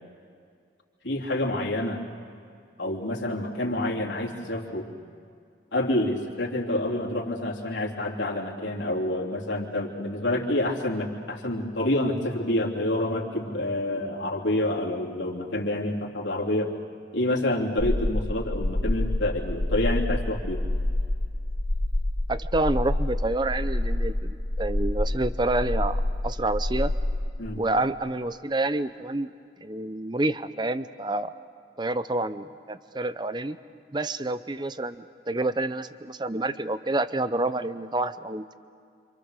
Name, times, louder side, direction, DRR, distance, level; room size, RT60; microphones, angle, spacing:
voice 1, 1.0-2.0 2.8-4.9 5.7-16.7 17.1-20.6 27.4-27.6, left 1 dB, 85° left, -2 dB, 3.3 m, -28 dB
sound 1, 17.8-27.2, left 1 dB, 60° left, 1.4 m, -27 dB
voice 2, 22.3-26.9 27.6-29.3 29.6-31.3 31.8-33.6 33.9-38.5, right 2 dB, 25° right, 13 dB, 0.7 m, -28 dB
28.5 x 26.5 x 6.6 m, 2.3 s
head